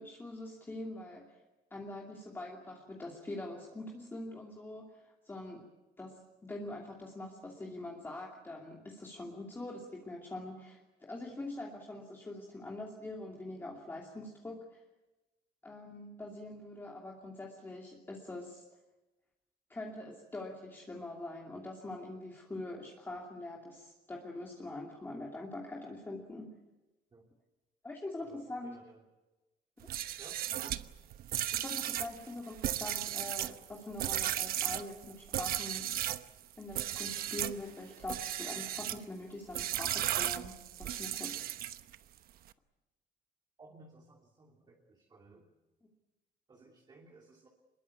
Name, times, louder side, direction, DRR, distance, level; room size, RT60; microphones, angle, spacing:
voice 1, 0.0-1.4 1.7-5.7 6.0-14.8 15.6-18.6 19.7-26.5 27.8-28.8 31.5-35.9 36.6-41.4 45.8-45.9, left 2 dB, 15° left, -1 dB, 2.7 m, -44 dB
voice 2, 28.2-29.0 30.2-30.8 43.6-45.4 46.5-47.5, right 3 dB, 25° right, 1 dB, 3.0 m, -57 dB
sound 1, 29.8-36.3 36.7-37.6 38.0-39.0 39.5-42.0, right 12 dB, 65° right, 1.0 m, -35 dB
25.5 x 21.5 x 8.4 m, 1.1 s
cardioid pair, 160°, 16 cm